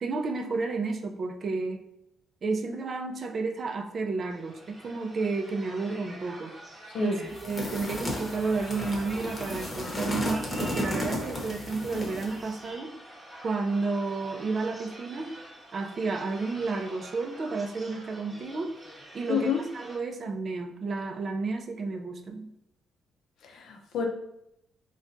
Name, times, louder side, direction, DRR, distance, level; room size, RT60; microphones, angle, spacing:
voice 1, 0.0-1.8 2.4-6.6 7.0-7.1 7.4-12.9 13.4-15.3 15.7-18.7 19.1-22.5, right 3 dB, 45° right, 4 dB, 0.4 m, -31 dB
sound 1, 4.3-20.0, right 1 dB, 20° right, 0.9 m, -46 dB
sound 2, 7.3-12.4, left 1 dB, 30° left, 0.9 m, -34 dB
voice 2, 19.3-19.6 23.4-24.1, left 6 dB, 70° left, 3 dB, 0.6 m, -29 dB
4.0 x 2.2 x 2.6 m, 0.81 s
cardioid pair, 90°, 0 cm